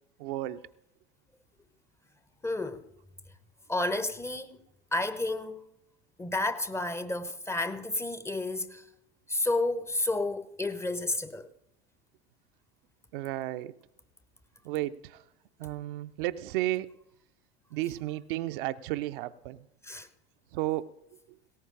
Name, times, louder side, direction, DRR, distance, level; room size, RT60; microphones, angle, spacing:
voice 1, 0.2-0.6 13.1-13.7 14.6-15.2 15.6-16.9 17.7-19.6 20.5-20.9, right 15 dB, 50° right, 0.5 m, -33 dB
voice 2, 2.4-2.9 3.7-4.7 4.9-5.6 6.2-8.9 9.3-11.5 19.8-20.1, left 2 dB, 10° left, 0.6 m, -31 dB
19.0 x 17.5 x 2.5 m
figure-of-eight pair, 75°, 33 cm